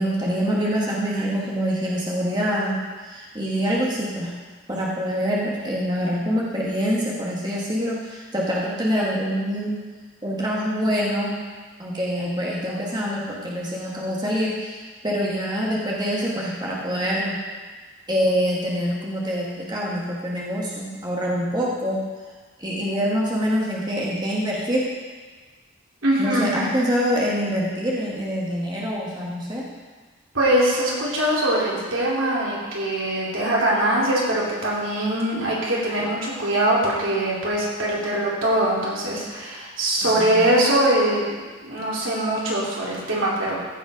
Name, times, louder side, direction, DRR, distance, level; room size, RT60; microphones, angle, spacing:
voice 1, 0.0-4.3 4.7-9.8 10.2-11.4 11.8-17.4 18.1-22.0 22.6-24.9 26.2-29.7 40.4-40.5, equal, 20° right, -4 dB, 1.2 m, -25 dB
voice 2, 26.0-26.7 30.3-41.2 41.6-43.6, right 1 dB, 85° right, -5 dB, 2.9 m, -22 dB
15.0 x 5.1 x 5.0 m, 1.4 s
head